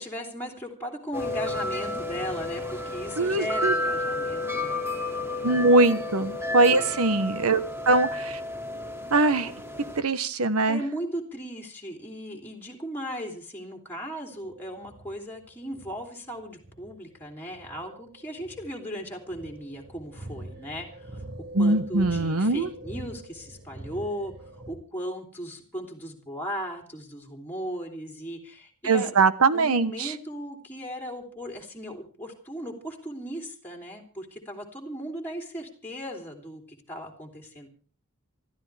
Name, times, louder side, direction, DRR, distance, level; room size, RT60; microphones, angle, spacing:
voice 1, 0.0-4.8 5.8-5.9 6.6-6.9 10.7-21.2 21.6-29.1 29.5-37.7, equal, 10° left, 1 dB, 3.0 m, -37 dB
sound 1, 1.1-10.0, left 2 dB, 10° right, 2.4 m, -31 dB
voice 2, 3.2-3.7 5.4-8.4 9.1-9.5 10.0-10.8 21.5-22.7 28.8-30.1, right 3 dB, 70° right, 13 dB, 1.1 m, -22 dB
sound 2, 14.3-24.7, right 1 dB, 50° right, 5.9 m, -44 dB
27.5 x 13.5 x 3.4 m, 0.39 s
head